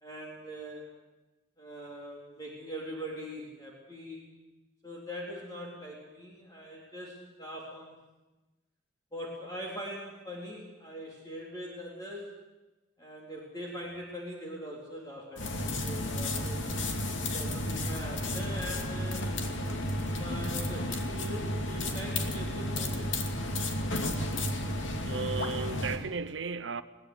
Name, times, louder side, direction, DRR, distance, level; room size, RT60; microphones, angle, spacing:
voice 1, 0.0-0.8 1.6-4.2 4.8-8.0 9.1-12.3 13.0-16.6 17.3-19.3 20.1-23.2, equal, 20° left, 3.9 m, -42 dB
sound 1, 15.4-26.0, left 1 dB, 75° left, 2.6 m, -32 dB
voice 2, 25.1-26.8, right 4 dB, 75° right, 0.9 m, -35 dB
21.0 x 18.5 x 8.2 m
head